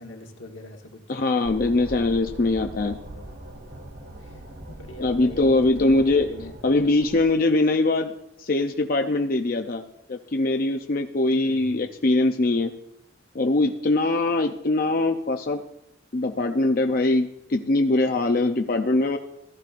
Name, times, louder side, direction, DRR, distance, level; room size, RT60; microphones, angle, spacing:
voice 1, 0.0-1.0 4.2-4.4 4.7-6.6 11.4-11.8, left 1 dB, 85° left, 2 dB, 1.5 m, -41 dB
voice 2, 1.1-3.0 5.0-6.3 6.6-8.1 8.4-9.8 10.1-12.7 13.3-15.6 16.1-19.2, left 2 dB, 50° left, 5 dB, 0.5 m, -22 dB
sound 1, 1.4-7.2, right 1 dB, 65° right, 1.7 m, -41 dB
15.0 x 12.0 x 2.5 m, 0.81 s
head